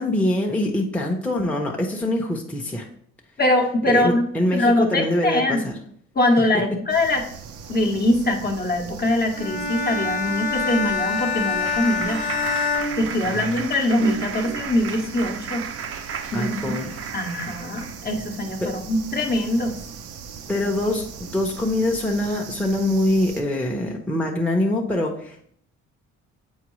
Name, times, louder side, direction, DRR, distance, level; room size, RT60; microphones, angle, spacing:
voice 1, 0.0-2.9 3.9-5.8 13.2-13.4 16.3-16.9 18.6-18.7 20.5-25.5, left 1 dB, 5° left, 0 dB, 0.8 m, -24 dB
voice 2, 3.4-5.6 6.1-7.2 7.7-12.2 13.0-15.7 16.3-16.8 17.1-19.8 20.5-20.7, left 1 dB, 30° left, 3 dB, 1.0 m, -22 dB
Tokyo Cicada, 6.9-23.4, right 6 dB, 90° right, 0.7 m, -40 dB
Bowed string instrument, 9.3-13.8, left 5 dB, 85° left, 1.2 m, -26 dB
Clapping, 10.8-18.1, right 7 dB, 50° right, 0.6 m, -34 dB
7.4 x 4.4 x 3.1 m, 0.64 s
cardioid pair, 90°, 30 cm